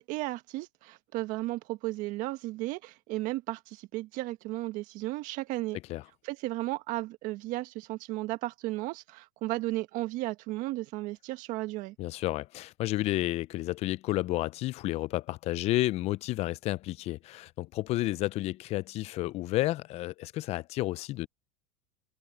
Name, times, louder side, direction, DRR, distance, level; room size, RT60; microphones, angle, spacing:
voice 1, 0.0-5.8 6.2-11.9, right 18 dB, 55° right, 1.5 m, -34 dB
voice 2, 12.0-21.3, left 17 dB, 40° left, 0.4 m, -31 dB
supercardioid pair, 125°, 16 cm